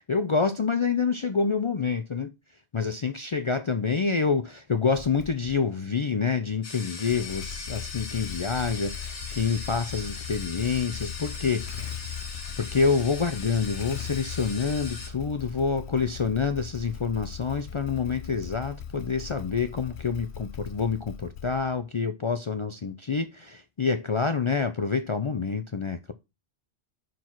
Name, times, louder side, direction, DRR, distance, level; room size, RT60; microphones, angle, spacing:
voice 1, 0.0-2.3 2.7-11.9 12.6-26.1, left 5 dB, 50° left, 0.3 m, -27 dB
Motorcycle / Engine starting, 4.9-5.6 7.0-21.9, left 8 dB, 70° left, 1.0 m, -39 dB
sound 1, 6.6-15.1, left 4 dB, 90° left, 1.6 m, -40 dB
5.9 x 4.7 x 4.5 m
omnidirectional pair, 1.1 m